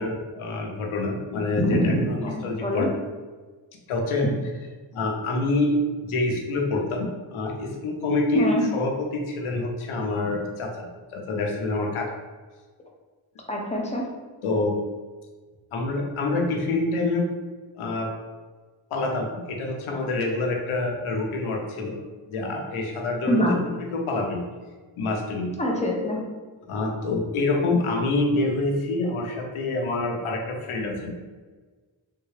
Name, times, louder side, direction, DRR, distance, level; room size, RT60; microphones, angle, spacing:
voice 1, 0.0-2.9 3.9-4.3 4.9-12.1 14.4-14.8 15.7-17.3 17.8-18.1 18.9-22.0 22.3-23.4 23.9-24.4 25.0-25.5 26.7-31.1, left 2 dB, 80° left, 0 dB, 0.8 m, -26 dB
voice 2, 1.6-2.9 8.3-8.6 13.5-14.0 23.3-23.5 25.6-26.2, equal, 15° left, -2 dB, 0.8 m, -24 dB
3.6 x 2.2 x 3.2 m, 1.4 s
cardioid pair, 85°, 49 cm